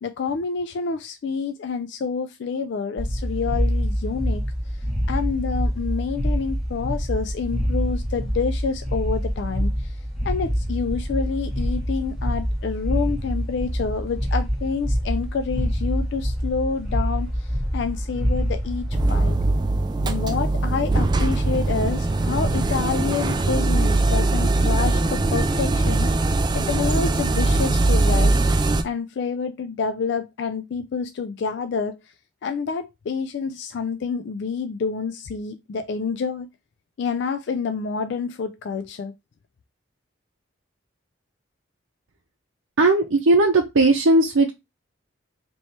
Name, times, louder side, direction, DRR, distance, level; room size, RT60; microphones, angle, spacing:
voice 1, 0.0-4.4 5.1-10.0 10.2-19.4 20.0-28.4 28.8-32.0 32.4-36.5 37.0-39.1, left 5 dB, 60° left, 0.3 m, -28 dB
sound 1, 3.0-19.2, equal, ahead, 1.4 m, -26 dB
sound 2, 18.9-28.8, right 2 dB, 20° right, 0.3 m, -21 dB
voice 2, 42.8-44.5, right 2 dB, 80° right, 0.7 m, -17 dB
3.2 x 3.0 x 4.1 m
head